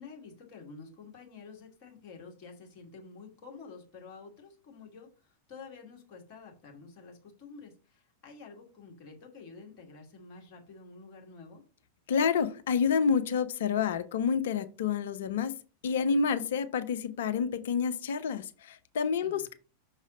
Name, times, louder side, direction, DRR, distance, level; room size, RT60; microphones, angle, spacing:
voice 1, 0.0-11.6 19.2-19.5, left 4 dB, 40° left, 1 dB, 2.2 m, -49 dB
voice 2, 12.1-15.5 15.8-19.5, left 6 dB, 60° left, 12 dB, 0.5 m, -28 dB
6.0 x 4.0 x 5.0 m, 0.35 s
figure-of-eight pair, 90°, 0 cm